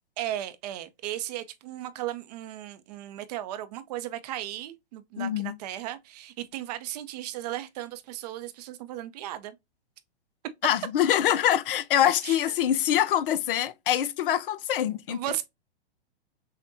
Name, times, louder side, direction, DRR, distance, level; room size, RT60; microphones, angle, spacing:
voice 1, 0.2-9.6 12.2-12.4 15.1-15.4, right 13 dB, 40° right, 0.5 m, -36 dB
voice 2, 5.2-5.5 10.6-15.2, left 11 dB, 60° left, 0.5 m, -24 dB
6.2 x 2.1 x 2.6 m
hypercardioid pair, 125°, 31 cm